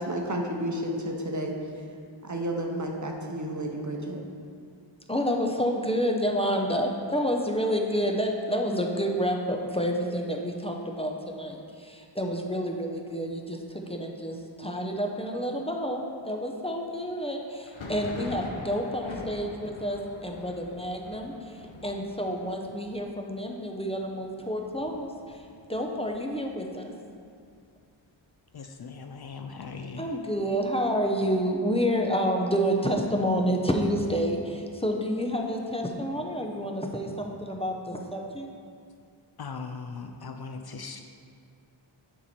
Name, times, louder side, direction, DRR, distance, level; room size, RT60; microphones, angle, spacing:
voice 1, 0.0-1.5 2.2-4.2, right 1 dB, 40° right, 1 dB, 0.8 m, -31 dB
voice 2, 5.1-21.5 21.8-25.4 25.7-26.9 30.0-38.5, equal, 15° left, 1 dB, 0.6 m, -29 dB
Thunder, 17.6-27.1 27.4-28.1 28.3-29.3 29.7-31.4, left 2 dB, 80° left, 0.9 m, -45 dB
voice 3, 28.5-30.1 39.4-41.0, left 4 dB, 55° left, 6 dB, 0.5 m, -39 dB
7.0 x 4.4 x 4.2 m, 2.3 s
wide cardioid pair, 55°, 47 cm